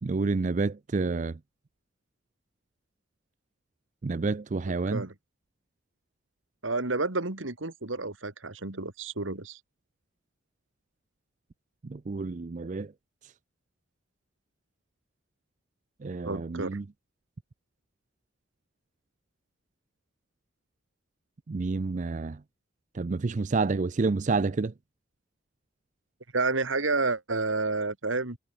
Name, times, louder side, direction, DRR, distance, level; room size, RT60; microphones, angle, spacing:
voice 1, 0.0-1.4 4.0-5.0 11.8-12.9 13.2-13.3 16.0-16.8 21.5-22.4 22.9-24.7, right 3 dB, 40° right, 0.4 m, -29 dB
voice 2, 6.6-9.6 16.2-16.8 26.3-28.4, right 3 dB, 85° right, 2.4 m, -30 dB
head